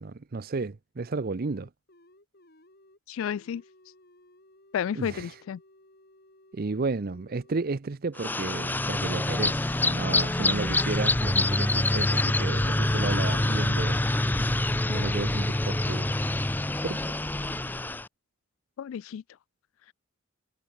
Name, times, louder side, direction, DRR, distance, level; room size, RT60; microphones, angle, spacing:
voice 1, 0.0-1.7 5.0-5.3 6.5-14.0 14.9-16.1 16.8-17.0, right 3 dB, 45° right, 0.6 m, -33 dB
sound 1, 1.1-7.7, left 1 dB, 50° left, 7.3 m, -58 dB
voice 2, 3.1-3.6 4.7-5.6 18.8-19.2, left 8 dB, 75° left, 0.3 m, -31 dB
sound 2, 8.2-18.1, left 2 dB, 10° left, 0.5 m, -26 dB
head